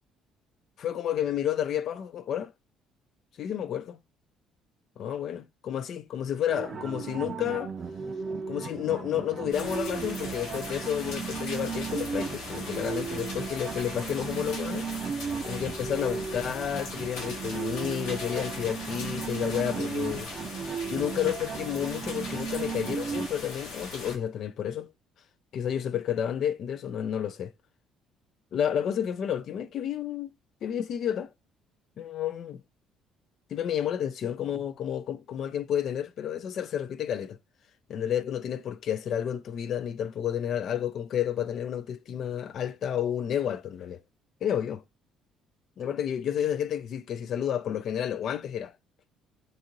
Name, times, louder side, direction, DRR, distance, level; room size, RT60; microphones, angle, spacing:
voice 1, 0.8-2.5 3.4-4.0 5.0-7.7 8.5-14.9 15.4-20.3 20.9-24.9 25.5-27.5 28.5-30.3 30.6-31.3 32.0-32.6 33.5-37.4 37.9-44.0 44.4-44.8 45.8-48.7, left 9 dB, 60° left, 0.4 m, -31 dB
sound 1, 6.5-23.3, right 6 dB, 40° right, 0.5 m, -35 dB
sound 2, 9.5-24.1, left 3 dB, 80° left, 1.0 m, -40 dB
2.7 x 2.4 x 2.9 m
supercardioid pair, 85°, 0 cm